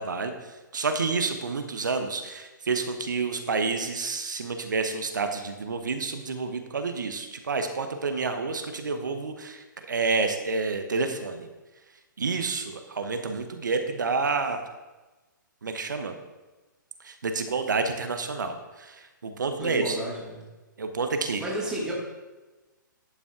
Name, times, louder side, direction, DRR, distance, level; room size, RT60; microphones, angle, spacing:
voice 1, 0.0-11.5 12.2-14.6 15.6-16.1 17.0-20.0 20.8-21.4, right 4 dB, 65° right, 7 dB, 0.9 m, -29 dB
voice 2, 19.5-20.4 21.4-21.9, right 1 dB, 5° right, -5 dB, 2.3 m, -32 dB
11.0 x 6.0 x 3.7 m, 1.2 s
figure-of-eight pair, 120°, 11 cm